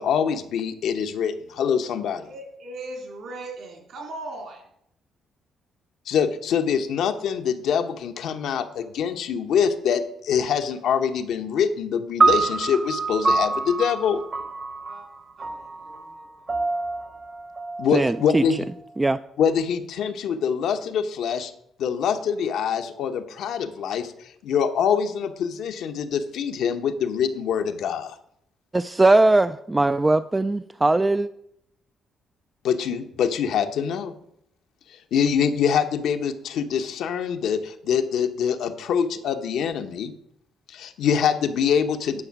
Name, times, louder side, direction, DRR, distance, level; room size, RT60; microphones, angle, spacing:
voice 1, 0.0-2.3 6.1-14.2 17.8-18.7 19.4-21.5 21.8-28.2 32.6-34.1 35.1-40.1 40.7-42.2, left 7 dB, 75° left, 7 dB, 0.9 m, -24 dB
voice 2, 2.2-4.6 14.8-15.0 15.4-16.3, right 2 dB, 65° right, 2 dB, 3.5 m, -39 dB
sound 1, 12.2-18.7, right 4 dB, 35° right, 1.0 m, -26 dB
voice 3, 17.9-18.4 19.0-19.2 28.7-31.3, right 2 dB, 15° right, 12 dB, 0.3 m, -20 dB
9.8 x 6.0 x 5.9 m, 0.74 s
cardioid pair, 90°, 0 cm